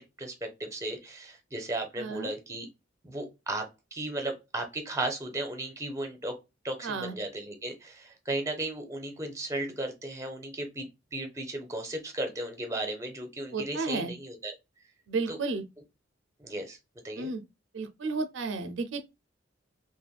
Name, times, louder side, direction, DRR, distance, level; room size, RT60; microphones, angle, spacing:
voice 1, 0.0-2.7 3.0-6.3 6.6-14.5 15.3-15.4 16.4-16.8 17.0-17.3, right 2 dB, 15° right, 0.6 m, -35 dB
voice 2, 2.0-2.3 6.8-7.1 13.5-14.1 15.1-15.6 17.2-17.4 17.7-19.0, right 3 dB, 75° right, 0.4 m, -32 dB
3.3 x 2.2 x 2.3 m
head